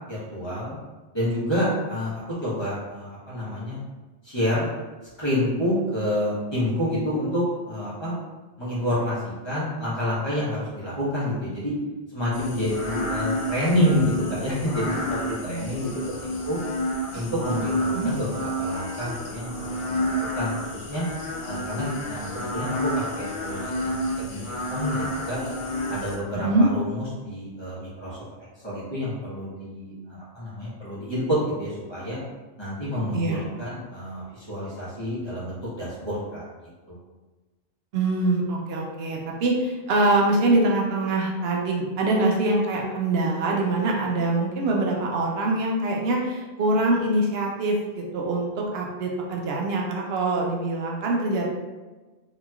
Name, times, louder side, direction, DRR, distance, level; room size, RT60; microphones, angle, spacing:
voice 1, 0.1-0.8 1.1-3.8 4.2-4.7 5.2-8.1 8.6-11.7 12.1-15.9 16.2-16.6 17.1-21.0 21.4-22.9 23.1-23.9 24.3-25.4 25.9-28.2 28.6-32.2 32.6-36.5 36.9-37.0, equal, 30° left, -9 dB, 1.0 m, -28 dB
sound 1, 12.3-26.2, equal, 45° left, 0.4 m, -30 dB
voice 2, 15.5-15.9 17.1-17.2 17.9-18.1 26.3-26.7 33.1-33.4 37.9-51.4, right 2 dB, 75° right, -1 dB, 0.8 m, -24 dB
3.0 x 2.8 x 2.3 m, 1.2 s
omnidirectional pair, 1.0 m